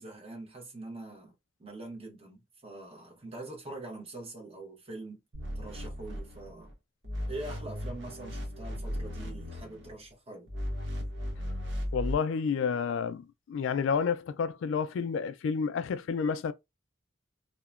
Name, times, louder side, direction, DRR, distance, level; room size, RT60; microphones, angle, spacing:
voice 1, 0.0-1.3 1.6-5.2 5.5-6.7 7.3-10.5, right 2 dB, 30° right, 0.9 m, -44 dB
sound 1, 5.3-6.7 7.0-9.9 10.5-12.2, equal, 75° right, 0.9 m, -36 dB
voice 2, 11.9-16.5, left 6 dB, 80° left, 0.3 m, -30 dB
2.8 x 2.1 x 2.3 m
head